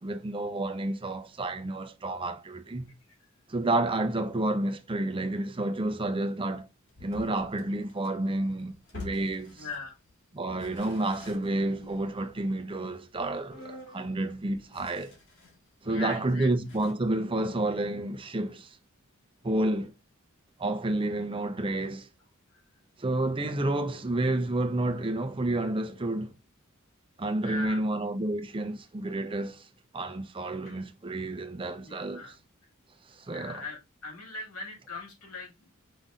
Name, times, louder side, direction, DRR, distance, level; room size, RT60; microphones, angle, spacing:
voice 1, 0.0-2.9 3.5-6.7 7.0-9.6 10.3-15.1 15.8-18.8 19.4-19.9 20.6-22.1 23.0-26.3 27.2-29.7 29.9-32.2 33.1-33.6, right 2 dB, 25° right, 0.6 m, -30 dB
sound 1, 6.9-10.1 10.5-15.7 16.0-16.1 16.6-16.9, left 3 dB, 60° left, 2.0 m, -48 dB
voice 2, 9.6-10.0 15.8-16.5 22.5-22.6 27.4-27.9 30.6-30.8 31.8-32.4 33.3-35.7, left 2 dB, 85° left, 2.2 m, -40 dB
5.2 x 3.9 x 2.4 m
head